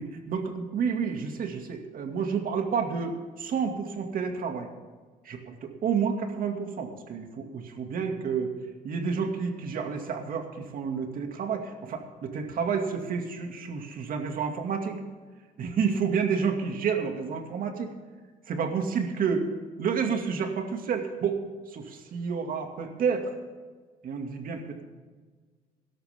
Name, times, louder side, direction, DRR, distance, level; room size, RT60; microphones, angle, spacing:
voice 1, 0.0-4.7 5.2-8.5 8.8-15.0 15.6-17.9 18.5-19.5 19.8-21.4 21.7-23.3 24.0-24.8, right 6 dB, 55° right, 4 dB, 2.4 m, -30 dB
17.5 x 12.5 x 3.7 m, 1.5 s
cardioid pair, 110°, 17 cm